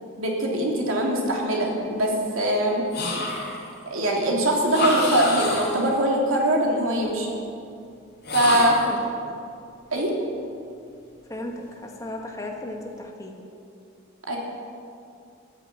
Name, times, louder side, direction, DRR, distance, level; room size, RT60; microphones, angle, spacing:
voice 1, 0.2-2.8 3.8-7.3 8.3-8.7 9.9-10.1 14.3-14.4, right 1 dB, 90° right, -1 dB, 3.2 m, -22 dB
sound 1, 2.9-3.7 4.7-5.9 8.2-9.0, left 2 dB, 50° left, 4.3 m, -27 dB
voice 2, 8.6-9.0 11.3-13.4, left 1 dB, 15° left, 1 dB, 1.6 m, -35 dB
13.5 x 11.0 x 8.8 m, 2.5 s
head